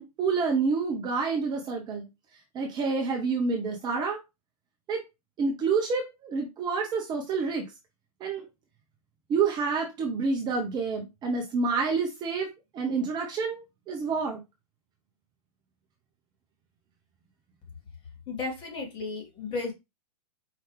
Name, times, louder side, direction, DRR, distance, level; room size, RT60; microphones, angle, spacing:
voice 1, 0.0-2.1 2.5-4.2 4.9-5.0 5.4-7.6 8.2-8.4 9.3-12.5 12.7-14.4, right 4 dB, 20° right, 1 dB, 0.9 m, -28 dB
voice 2, 18.3-19.7, left 3 dB, 25° left, 1 dB, 1.9 m, -34 dB
4.9 x 3.0 x 3.1 m, 0.23 s
figure-of-eight pair, 115°, 20 cm